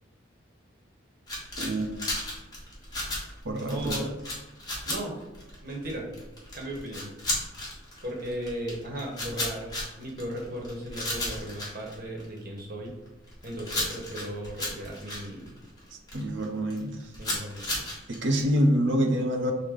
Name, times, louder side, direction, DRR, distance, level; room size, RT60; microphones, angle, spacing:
sound 1, 1.3-12.6 13.1-16.4 16.7-18.4, left 1 dB, 20° left, 1.2 m, -34 dB
voice 1, 1.6-2.0 3.4-4.1 16.1-17.1 18.1-19.5, equal, 65° right, 3 dB, 0.6 m, -26 dB
voice 2, 3.7-4.1 4.8-5.2 5.6-6.1 6.5-7.1 8.0-9.7 10.0-12.9 13.4-15.5 17.2-17.8, right 1 dB, 50° right, -1 dB, 1.1 m, -36 dB
6.4 x 2.1 x 3.7 m, 1.0 s
head